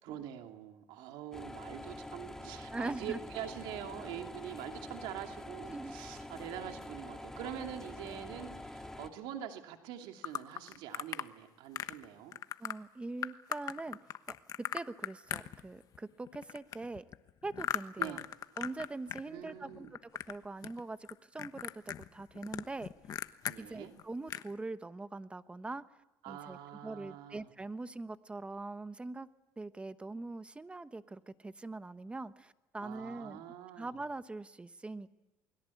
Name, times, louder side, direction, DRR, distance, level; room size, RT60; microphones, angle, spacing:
voice 1, 0.0-12.4 18.0-18.2 19.3-19.9 23.5-23.9 26.2-27.5 32.8-33.9, right 10 dB, 75° right, 4 dB, 2.7 m, -45 dB
sound 1, 1.3-9.1, left 1 dB, 5° left, 2.1 m, -46 dB
voice 2, 2.7-3.2 5.6-6.0 12.6-14.0 14.3-17.0 17.4-18.2 18.6-20.0 20.3-22.9 23.6-25.8 26.3-29.3 29.6-33.4 33.8-35.2, right 2 dB, 15° right, 12 dB, 1.1 m, -42 dB
sound 2, 10.2-11.3 11.7-12.0 12.3-12.7 13.2-16.0 16.3-19.2 19.5-20.4 20.6-21.1 21.4-23.6 24.0-24.1 24.3-24.5, left 10 dB, 45° left, 1.2 m, -38 dB
28.5 x 22.0 x 8.5 m, 0.97 s
cardioid pair, 115°, 8 cm